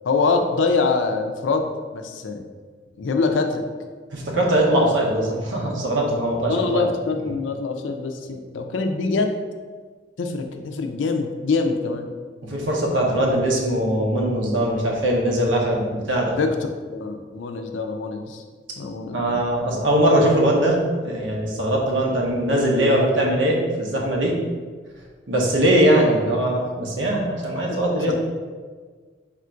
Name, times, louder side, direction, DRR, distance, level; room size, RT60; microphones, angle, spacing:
voice 1, 0.0-2.4 3.0-3.6 6.5-9.3 10.2-12.1 16.4-16.5 16.9-18.4 18.8-19.4 27.9-28.1, left 4 dB, 85° left, 5 dB, 0.4 m, -24 dB
voice 2, 4.1-6.9 12.4-16.4 19.1-24.4 25.3-28.1, right 1 dB, 90° right, -1 dB, 0.8 m, -21 dB
3.6 x 2.5 x 4.3 m, 1.5 s
head